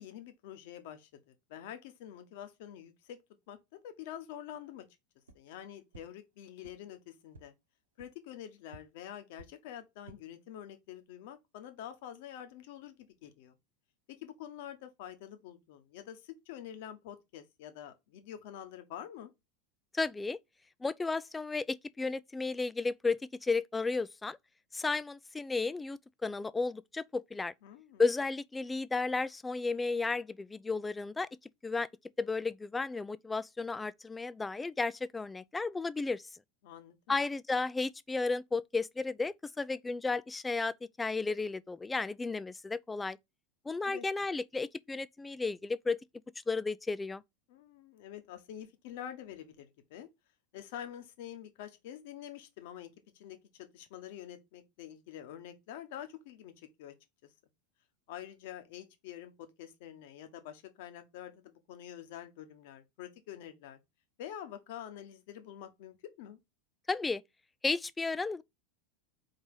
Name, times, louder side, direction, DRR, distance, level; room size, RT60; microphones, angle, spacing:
voice 1, 0.0-3.2 3.5-3.6 3.8-4.9 5.3-7.5 8.0-13.0 13.2-13.6 14.1-19.3 27.6-28.0 36.6-37.1 43.8-44.0 47.5-50.1 50.5-53.4 53.7-56.9 58.1-63.8 64.2-66.4, left 10 dB, 65° left, 1.2 m, -47 dB
sound 1, 5.2-5.4 5.9-6.0 6.6-6.7 7.3-7.4 8.0-8.1 8.7-8.8 9.3-9.5 9.9-10.2, right 3 dB, 90° right, 1.1 m, -52 dB
voice 2, 19.9-20.4 20.8-24.4 24.7-27.5 28.0-31.3 31.6-31.9 32.2-36.2 37.1-43.2 43.7-46.0 46.5-47.2 66.9-67.2 67.6-68.4, left 3 dB, 15° left, 0.4 m, -33 dB
4.7 x 4.0 x 5.5 m
hypercardioid pair, 90°, 0 cm